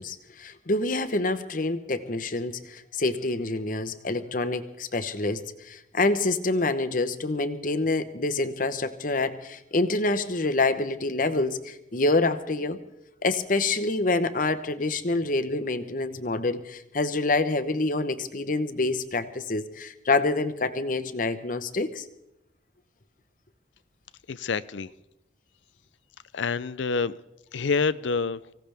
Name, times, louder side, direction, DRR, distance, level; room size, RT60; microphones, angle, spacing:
voice 1, 0.0-12.8 13.2-22.0, left 2 dB, 50° left, 10 dB, 1.0 m, -27 dB
voice 2, 24.3-24.9 26.3-27.1 27.5-28.4, left 4 dB, 90° left, 15 dB, 0.5 m, -27 dB
24.5 x 16.5 x 3.5 m, 0.86 s
head